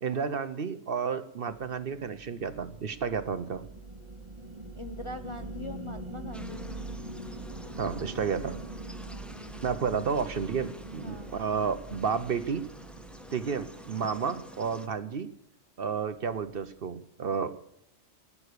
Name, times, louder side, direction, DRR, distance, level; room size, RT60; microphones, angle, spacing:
voice 1, 0.0-3.6 7.8-8.6 9.6-12.6 13.3-15.3 15.8-17.6, right 6 dB, 50° right, 13 dB, 0.9 m, -31 dB
sound 1, 1.8-15.1, right 2 dB, 25° right, 2.1 m, -43 dB
voice 2, 4.7-6.8 11.0-11.3, left 2 dB, 35° left, 7 dB, 0.5 m, -42 dB
sound 2, 6.3-14.9, equal, ahead, 0.9 m, -49 dB
19.0 x 9.9 x 6.6 m, 0.73 s
omnidirectional pair, 1.3 m